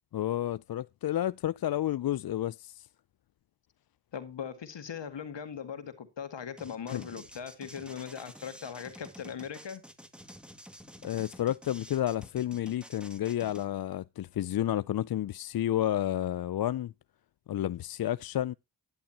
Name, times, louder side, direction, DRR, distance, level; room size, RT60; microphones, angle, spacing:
voice 1, 0.1-2.9 6.9-7.0 11.0-16.9 17.5-18.5, left 12 dB, 55° left, 0.5 m, -31 dB
voice 2, 4.1-9.8, left 7 dB, 70° left, 2.1 m, -40 dB
sound 1, 6.6-13.7, equal, ahead, 2.0 m, -50 dB
12.5 x 10.5 x 2.9 m
cardioid pair, 45°, 45 cm